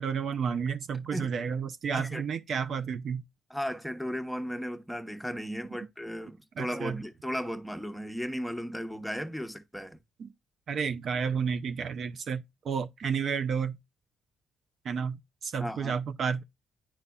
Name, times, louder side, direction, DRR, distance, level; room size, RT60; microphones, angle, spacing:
voice 1, 0.0-3.2 6.6-7.0 10.2-10.3 10.7-13.8 14.8-15.2 15.4-16.4, right 6 dB, 60° right, 0.5 m, -31 dB
voice 2, 3.5-10.0 15.6-15.9, equal, ahead, 0.8 m, -35 dB
10.0 x 4.1 x 2.3 m
cardioid pair, 90°, 0 cm